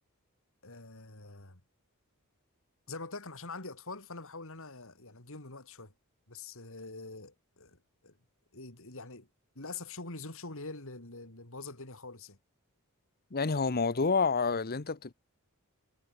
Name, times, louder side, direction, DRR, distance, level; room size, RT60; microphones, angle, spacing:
voice 1, 0.6-1.6 2.9-5.9 6.3-7.8 8.0-8.2 8.5-9.3 9.6-12.4, left 3 dB, 65° left, 4.1 m, -44 dB
voice 2, 13.3-15.1, left 4 dB, 45° left, 1.0 m, -28 dB
head